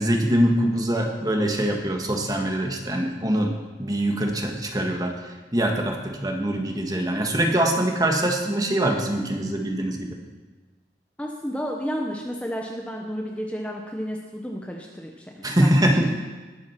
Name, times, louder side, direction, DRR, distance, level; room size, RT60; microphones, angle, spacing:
voice 1, 0.0-3.5 3.8-10.2 15.4-16.1, right 1 dB, 20° right, 2 dB, 1.6 m, -23 dB
voice 2, 11.2-16.1, equal, 5° left, 0 dB, 1.0 m, -32 dB
19.0 x 8.5 x 5.9 m, 1.3 s
head